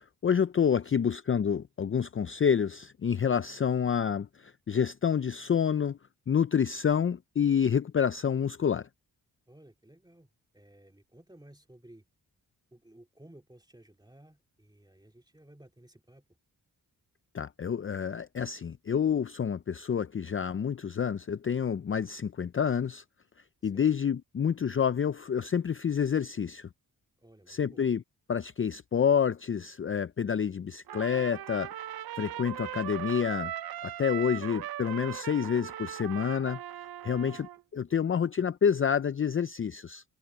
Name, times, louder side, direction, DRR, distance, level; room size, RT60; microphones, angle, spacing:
voice 1, 0.0-6.0 6.3-8.9 17.3-23.0 23.6-26.7 27.5-28.0 28.3-31.7 32.2-33.5 33.8-36.6 37.0-37.5 37.7-40.0, left 7 dB, 35° left, 0.5 m, -28 dB
voice 2, 0.8-1.1 9.5-12.0 12.7-16.2 23.6-23.9 27.2-27.9 37.0-37.4 37.9-38.0, right 1 dB, 10° right, 2.5 m, -56 dB
Trumpet, 30.9-37.6, right 12 dB, 70° right, 0.6 m, -39 dB
cardioid pair, 60°, 39 cm